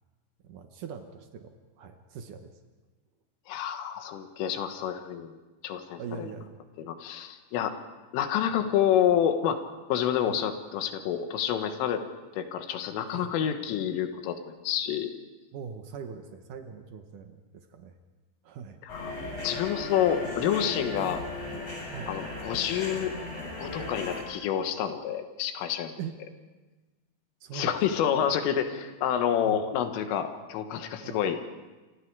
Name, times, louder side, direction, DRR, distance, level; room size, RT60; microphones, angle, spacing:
voice 1, 0.4-2.5 6.0-6.6 10.3-10.4 13.1-13.3 15.5-18.0 18.4-18.8 21.9-22.1 26.0-26.1 27.4-27.7 29.4-29.6 31.0-31.2, right 7 dB, 80° right, 6 dB, 1.8 m, -41 dB
voice 2, 3.5-5.3 5.6-6.3 6.8-7.7 8.1-9.6 9.9-12.0 12.3-15.1 18.8-21.2 22.1-23.2 23.6-26.0 27.5-31.4, left 9 dB, 85° left, 7 dB, 4.0 m, -28 dB
sound 1, 18.9-24.2, left 2 dB, 20° left, 7.7 m, -36 dB
29.0 x 25.0 x 4.8 m, 1.2 s
omnidirectional pair, 5.6 m